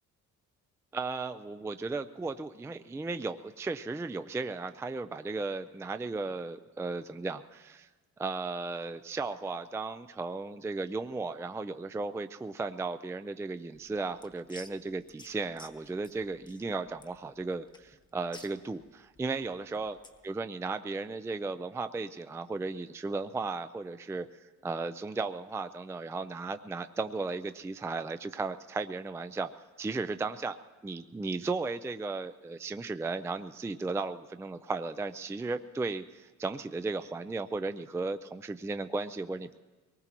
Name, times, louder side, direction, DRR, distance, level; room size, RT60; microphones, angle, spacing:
voice 1, 0.9-7.9 8.2-20.0 20.2-24.3 24.6-29.5 29.8-30.6 30.8-39.5, right 3 dB, 10° right, 10 dB, 0.4 m, -35 dB
sound 1, 13.7-20.3, left 2 dB, 15° left, 1.1 m, -54 dB
23.0 x 19.0 x 3.0 m, 1.3 s
cardioid pair, 90°, 30 cm